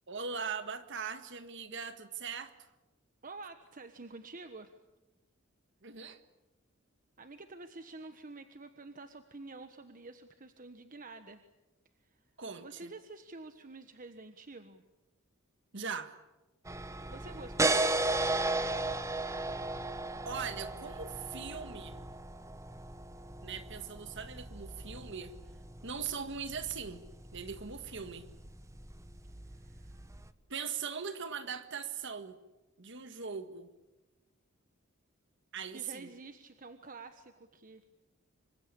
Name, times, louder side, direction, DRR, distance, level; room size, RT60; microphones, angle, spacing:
voice 1, 0.1-2.5 5.8-6.2 12.4-12.9 15.7-16.1 20.2-22.0 23.4-25.3 25.8-27.0 27.3-28.3 30.5-32.4 32.8-33.7 35.5-36.1, right 6 dB, 60° right, 10 dB, 1.7 m, -40 dB
voice 2, 3.2-4.7 7.2-11.4 12.6-14.8 17.1-17.9 29.4-30.0 35.7-37.8, right 3 dB, 40° right, 8 dB, 1.3 m, -48 dB
sound 1, 16.6-30.3, right 2 dB, 15° right, 1.2 m, -36 dB
27.0 x 24.5 x 8.6 m, 1.0 s
head